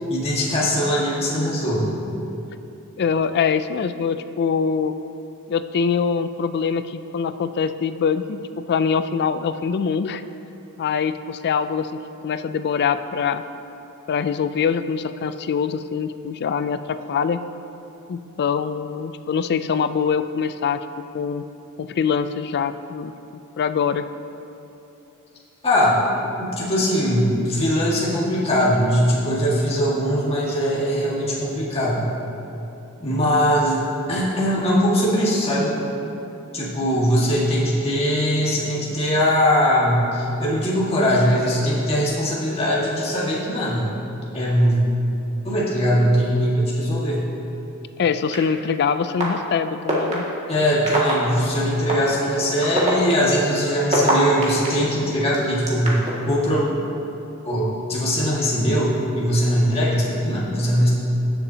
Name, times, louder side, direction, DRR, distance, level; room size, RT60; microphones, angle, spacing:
voice 1, 0.1-2.0 25.6-26.0 26.4-32.0 33.0-35.7 36.5-43.9 44.3-44.8 45.4-47.3 50.5-56.0 56.3-56.6 57.4-60.9, equal, 30° left, -7 dB, 1.8 m, -21 dB
voice 2, 3.0-4.9 5.5-10.2 10.8-13.4 14.1-17.4 18.1-20.8 21.1-21.4 21.8-23.1 23.6-24.1 48.0-50.2, left 6 dB, 50° left, 11 dB, 0.3 m, -23 dB
sound 1, 48.3-48.4 49.2-49.3 49.9-50.1 50.9-51.1 51.9-52.0 52.6-54.7 55.3-56.1, right 2 dB, 30° right, 2.0 m, -22 dB
19.5 x 7.0 x 2.8 m, 2.9 s
head